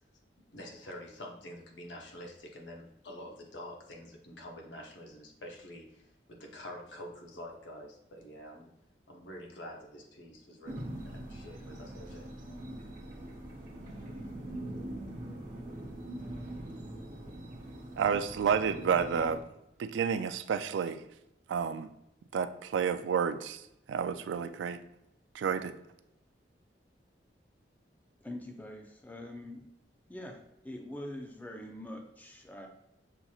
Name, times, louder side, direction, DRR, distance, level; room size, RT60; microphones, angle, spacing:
voice 1, 0.4-8.7 9.1-12.3, left 1 dB, 80° left, 0 dB, 0.9 m, -47 dB
sound 1, 10.7-19.4, right 1 dB, 45° right, 0.9 m, -43 dB
voice 2, 18.0-19.4 19.8-21.0 21.5-21.9 22.3-23.6 23.9-24.8 25.3-25.7, right 7 dB, 85° right, 11 dB, 0.3 m, -30 dB
voice 3, 28.2-29.7 30.1-32.7, left 1 dB, 10° left, 2 dB, 0.5 m, -44 dB
6.7 x 2.9 x 2.4 m, 0.83 s
head